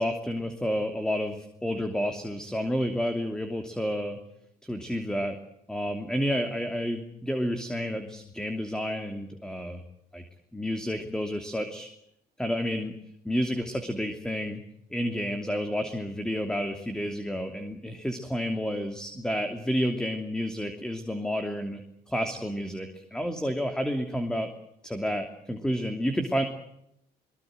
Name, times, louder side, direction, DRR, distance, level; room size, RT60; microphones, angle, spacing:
voice 1, 0.0-4.2 4.7-5.3 5.7-9.8 10.1-10.2 10.5-11.9 12.4-12.9 13.2-14.6 14.9-21.8 22.1-24.5 24.8-26.4, equal, 5° left, 5 dB, 2.9 m, -30 dB
23.0 x 22.5 x 8.0 m, 0.78 s
cardioid pair, 110°, 17 cm